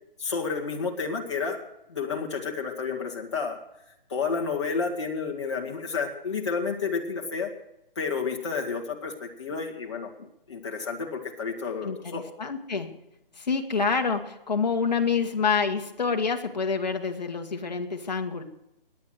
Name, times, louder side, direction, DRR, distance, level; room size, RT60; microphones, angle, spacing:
voice 1, 0.2-1.6 1.9-3.6 4.1-7.5 8.0-10.1 10.5-12.2 13.8-13.9, left 5 dB, 30° left, -1 dB, 2.2 m, -30 dB
voice 2, 11.8-13.0 13.4-18.4, left 5 dB, 45° left, 4 dB, 1.7 m, -27 dB
18.0 x 10.5 x 6.4 m, 0.88 s
hypercardioid pair, 180°, 29 cm